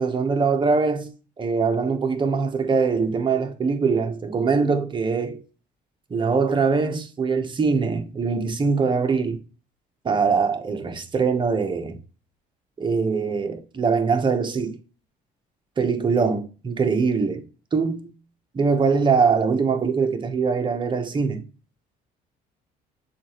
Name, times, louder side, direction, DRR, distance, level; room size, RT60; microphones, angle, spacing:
voice 1, 0.0-5.4 6.1-9.4 10.0-12.0 12.8-14.8 15.8-17.4 17.7-18.1 18.5-21.5, right 5 dB, 30° right, 0.9 m, -22 dB
7.1 x 2.5 x 3.0 m
cardioid pair, 110°, 17 cm